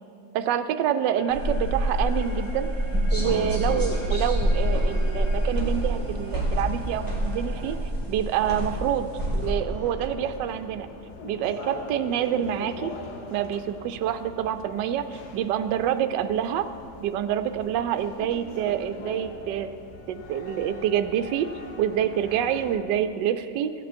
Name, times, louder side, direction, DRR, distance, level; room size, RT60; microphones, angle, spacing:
voice 1, 0.3-2.7 3.1-7.8 8.1-9.1 9.3-10.9 11.2-12.9 13.3-16.7 17.0-19.7 20.1-21.5 21.8-23.7, right 10 dB, 80° right, 10 dB, 1.2 m, -27 dB
sound 1, 1.1-7.8, right 2 dB, 25° right, 0.9 m, -44 dB
sound 2, 1.3-9.5, equal, 10° left, 1.7 m, -26 dB
sound 3, 4.3-22.8, left 3 dB, 65° left, 1.4 m, -43 dB
15.5 x 8.6 x 4.3 m, 2.7 s
omnidirectional pair, 1.9 m